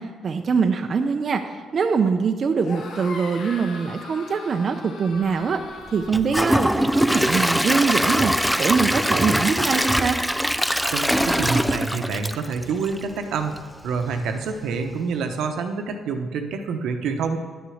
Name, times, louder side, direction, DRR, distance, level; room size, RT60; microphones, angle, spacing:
voice 1, 0.0-5.6 5.9-10.2, right 5 dB, 50° right, 5 dB, 0.6 m, -23 dB
sound 1, 2.5-8.0, left 3 dB, 70° left, 1.4 m, -40 dB
Gurgling / Toilet flush / Trickle dribble, 6.1-13.1 13.6-13.7 14.1-14.2, equal, ahead, 0.3 m, -22 dB
voice 2, 10.9-13.5 13.8-17.4, right 5 dB, 80° right, 5 dB, 0.9 m, -27 dB
10.5 x 6.8 x 6.4 m, 1.5 s
cardioid pair, 90°, 0 cm